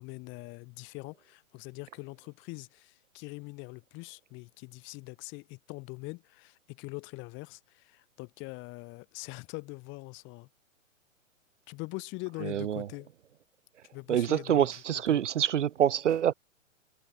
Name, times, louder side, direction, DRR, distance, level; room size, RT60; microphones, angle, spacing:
voice 1, 0.0-10.5 11.7-13.1 13.9-15.2, left 25 dB, 30° left, 3.3 m, -43 dB
voice 2, 12.4-12.9 14.1-16.3, right 10 dB, 60° right, 1.0 m, -26 dB
figure-of-eight pair, 120°, 40 cm